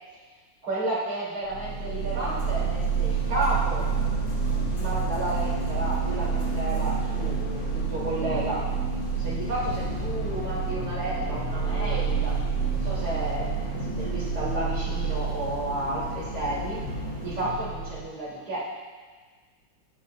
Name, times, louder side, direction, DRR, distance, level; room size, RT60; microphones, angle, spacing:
voice 1, 0.6-3.9 4.7-7.4 7.7-8.7 9.2-12.4 12.7-13.5 14.0-16.8 17.2-18.7, right 1 dB, 80° right, -6 dB, 4.2 m, -32 dB
sound 1, 1.5-18.1, right 5 dB, 80° left, 4.7 m, -28 dB
24.5 x 10.0 x 2.6 m, 1.5 s
omnidirectional pair, 2.3 m